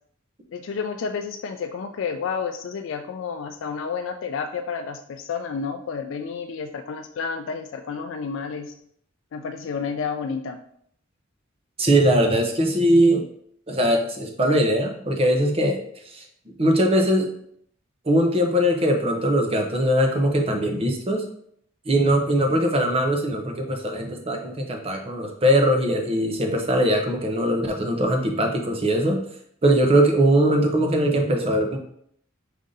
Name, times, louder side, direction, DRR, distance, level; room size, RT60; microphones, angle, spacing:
voice 1, 0.5-8.8 9.3-10.6, left 5 dB, 70° left, 6 dB, 0.3 m, -30 dB
voice 2, 11.8-13.3 13.7-16.2 16.6-17.3 18.0-21.2 21.9-29.2 29.6-31.8, right 1 dB, 30° right, 3 dB, 0.7 m, -21 dB
5.0 x 2.7 x 3.8 m, 0.67 s
head